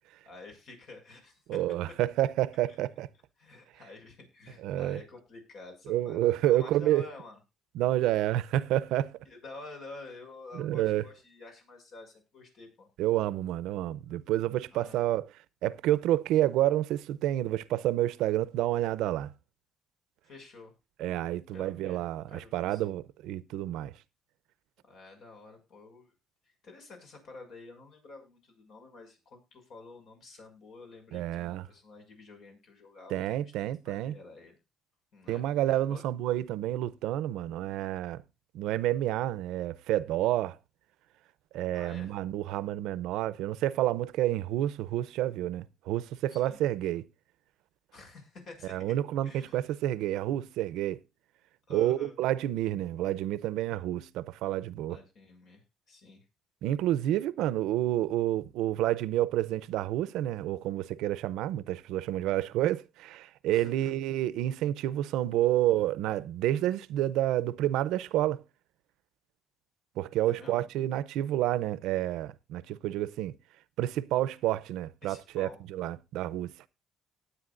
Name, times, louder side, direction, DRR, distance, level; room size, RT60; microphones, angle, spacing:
voice 1, 0.2-1.4 2.7-2.8 3.4-7.4 9.2-12.9 14.7-15.0 20.2-20.7 21.5-22.0 22.3-22.9 24.9-26.1 26.6-33.5 33.9-34.6 35.1-35.4 35.7-36.0 41.7-42.1 46.3-46.6 47.9-48.9 49.2-49.7 51.7-52.1 54.9-56.2 63.5-63.9 70.3-70.7 75.0-75.6, left 3 dB, 65° left, 6.3 m, -49 dB
voice 2, 1.5-3.1 4.6-5.0 5.9-7.0 7.7-9.2 10.5-11.0 13.0-15.3 15.6-19.3 21.0-23.9 31.1-31.6 33.1-34.1 35.3-38.2 38.5-40.6 41.5-47.1 48.7-51.0 51.7-55.0 56.6-68.4 70.0-73.3 73.8-76.5, right 13 dB, 85° right, 0.6 m, -29 dB
19.0 x 8.2 x 2.5 m
cardioid pair, 100°, 0 cm